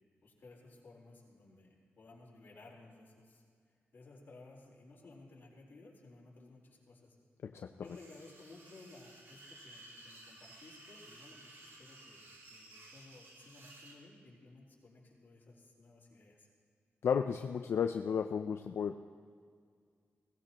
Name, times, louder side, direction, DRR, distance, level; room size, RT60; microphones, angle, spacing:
voice 1, 0.2-3.4 3.9-7.1 7.8-16.5, left 2 dB, 45° left, -4 dB, 4.1 m, -57 dB
sound 1, 7.8-14.0, right 2 dB, 80° right, 3.0 m, -56 dB
voice 2, 17.0-19.0, left 7 dB, 70° left, 6 dB, 0.5 m, -33 dB
21.0 x 18.0 x 3.0 m, 2.1 s
wide cardioid pair, 130°, 4 cm